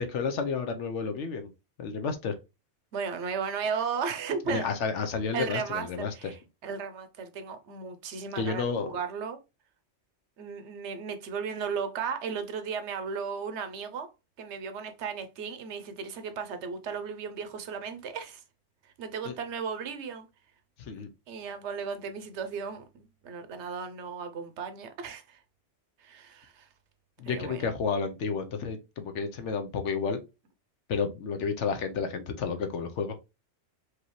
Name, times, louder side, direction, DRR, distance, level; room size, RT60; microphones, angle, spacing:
voice 1, 0.0-1.5 1.8-2.4 4.5-6.1 8.4-9.0 19.3-19.4 20.8-21.1 27.2-30.2 30.9-33.2, left 5 dB, 70° left, 1.0 m, -31 dB
voice 2, 2.9-4.7 5.3-9.4 10.4-14.1 14.4-18.4 19.0-20.3 21.3-22.8 23.2-25.4 26.0-26.7 27.2-27.6, right 6 dB, 65° right, 1.0 m, -35 dB
4.8 x 2.7 x 3.1 m
omnidirectional pair, 1.3 m